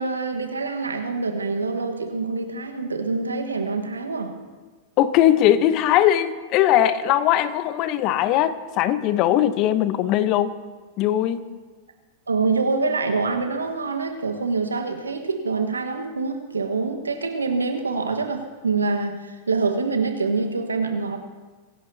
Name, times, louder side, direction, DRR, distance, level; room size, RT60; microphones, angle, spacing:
voice 1, 0.0-4.3 12.3-21.2, right 4 dB, 90° right, 5 dB, 1.4 m, -25 dB
voice 2, 5.0-10.5 11.0-11.4, left 12 dB, 45° left, 13 dB, 0.9 m, -20 dB
25.0 x 17.0 x 2.8 m, 1.4 s
hypercardioid pair, 95°, 0 cm